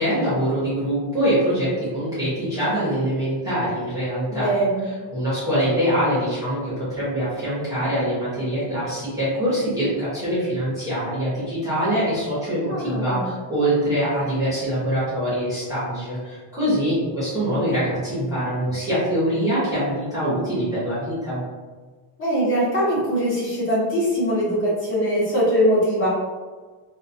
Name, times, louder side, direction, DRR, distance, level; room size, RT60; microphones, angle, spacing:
voice 1, 0.0-4.5 5.1-21.4, equal, 5° right, -13 dB, 0.7 m, -24 dB
voice 2, 4.3-4.9 12.7-13.3 22.2-26.1, equal, 25° left, -8 dB, 0.9 m, -22 dB
2.3 x 2.3 x 2.5 m, 1.4 s
cardioid pair, 180°, 50 cm